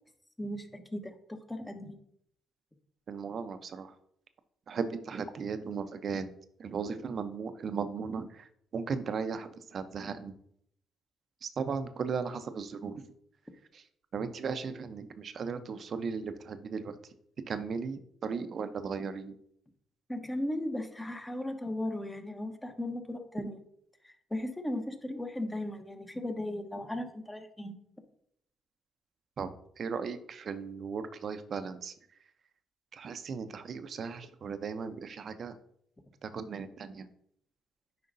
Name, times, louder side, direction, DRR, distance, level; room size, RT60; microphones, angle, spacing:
voice 1, 0.4-2.0 20.1-23.6 24.0-27.8, left 1 dB, 15° left, 6 dB, 1.1 m, -36 dB
voice 2, 3.1-3.9 4.7-6.3 6.6-10.3 11.4-13.1 13.7-13.8 14.1-17.0 17.5-19.4 29.4-29.5 29.8-31.9 32.9-35.6 36.2-37.1, right 5 dB, 55° right, 10 dB, 0.6 m, -36 dB
9.4 x 5.2 x 2.6 m, 0.71 s
supercardioid pair, 60°, 0 cm